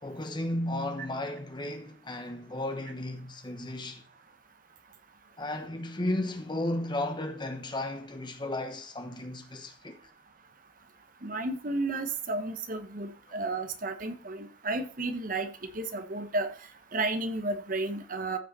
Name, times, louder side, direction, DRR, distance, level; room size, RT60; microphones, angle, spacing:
voice 1, 0.0-4.0 5.4-10.0, left 1 dB, 25° left, 1.2 m, -34 dB
voice 2, 11.2-16.5 16.9-18.4, right 2 dB, 50° right, 1.2 m, -32 dB
14.5 x 5.6 x 4.1 m
head